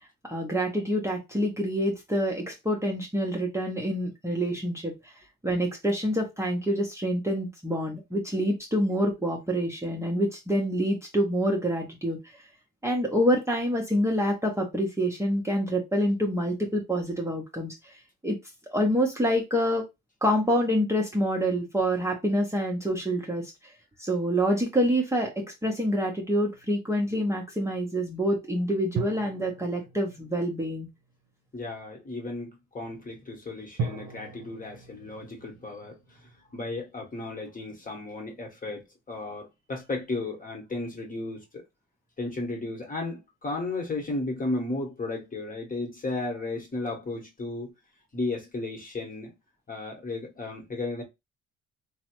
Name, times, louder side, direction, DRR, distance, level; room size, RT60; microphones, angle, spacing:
voice 1, 0.2-5.1 5.4-12.2 12.8-18.4 18.7-19.9 20.2-23.7 24.0-25.3 25.6-30.9, equal, 10° right, 0.7 m, -27 dB
sound 1, 26.3-27.2 29.0-31.3 33.8-36.8, right 4 dB, 80° right, 0.6 m, -39 dB
voice 2, 31.5-36.0 36.5-41.6 42.2-47.7 48.1-49.3 49.7-51.0, left 2 dB, 30° left, 1.1 m, -34 dB
3.1 x 2.0 x 2.9 m
cardioid pair, 90°, 30 cm